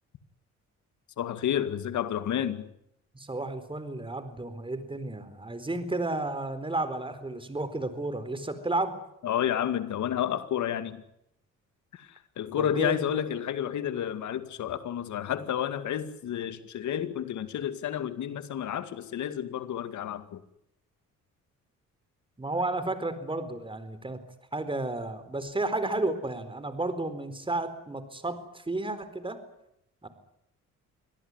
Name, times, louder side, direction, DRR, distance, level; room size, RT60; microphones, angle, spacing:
voice 1, 1.2-2.6 9.2-11.0 11.9-20.4, left 10 dB, 70° left, 11 dB, 2.2 m, -30 dB
voice 2, 3.1-8.9 12.6-13.0 22.4-24.2 24.5-29.4 30.0-30.1, right 2 dB, 15° right, 12 dB, 4.2 m, -32 dB
25.0 x 18.0 x 9.8 m, 0.79 s
cardioid pair, 90°, 30 cm